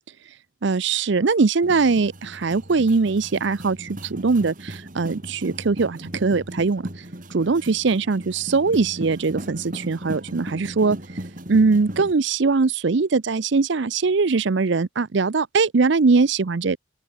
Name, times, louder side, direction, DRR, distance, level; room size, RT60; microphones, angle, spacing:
voice 1, 0.6-6.8 7.3-11.0 11.5-16.8, right 4 dB, 55° right, 0.6 m, -21 dB
sound 1, 1.6-12.1, right 1 dB, 40° right, 3.1 m, -37 dB
open air
head